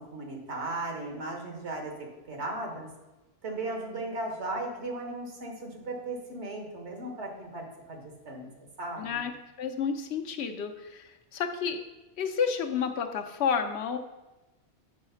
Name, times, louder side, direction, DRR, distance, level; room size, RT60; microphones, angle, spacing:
voice 1, 0.0-1.9 2.3-2.9 3.4-8.5 8.8-9.2, right 2 dB, 75° right, 1 dB, 1.6 m, -36 dB
voice 2, 9.0-11.8 12.2-14.0, left 6 dB, 70° left, 6 dB, 0.9 m, -31 dB
6.3 x 4.0 x 5.6 m, 1.0 s
omnidirectional pair, 1.2 m